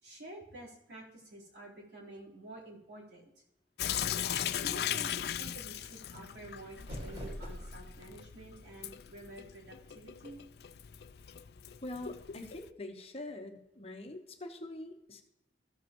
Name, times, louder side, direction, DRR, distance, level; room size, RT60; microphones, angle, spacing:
voice 1, 0.0-3.3 4.6-10.4, right 1 dB, 75° right, -5 dB, 3.9 m, -49 dB
Sink (filling or washing) / Drip, 3.8-12.7, left 10 dB, 60° left, 0.4 m, -39 dB
sound 1, 6.5-8.1, equal, 40° right, 2.9 m, -43 dB
voice 2, 11.8-15.2, left 2 dB, 35° left, 5 dB, 1.0 m, -44 dB
14.5 x 7.5 x 3.0 m, 0.87 s
head